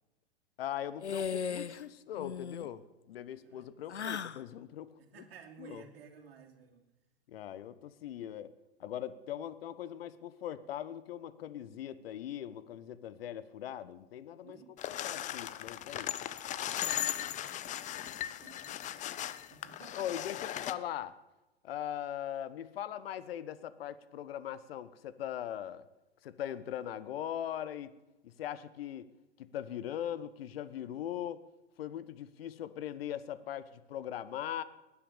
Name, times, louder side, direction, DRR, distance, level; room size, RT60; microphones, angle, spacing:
voice 1, 0.6-5.2 5.6-5.8 7.3-8.5 8.8-14.6 14.8-16.1 19.9-21.1 21.6-25.8 26.2-27.9 28.2-29.1 29.4-31.4 31.8-34.6, left 10 dB, 60° left, 16 dB, 1.2 m, -40 dB
sound 1, 1.0-1.8 2.1-2.7 3.9-4.4, left 7 dB, 85° left, 0.8 m, -37 dB
voice 2, 5.0-6.8 14.4-14.8 15.1-15.5 16.7-20.1, right 7 dB, 60° right, 2 dB, 2.9 m, -56 dB
sound 2, 14.8-20.7, left 12 dB, 20° left, 0.7 m, -38 dB
20.0 x 10.0 x 7.0 m, 1.0 s
figure-of-eight pair, 100°, 33 cm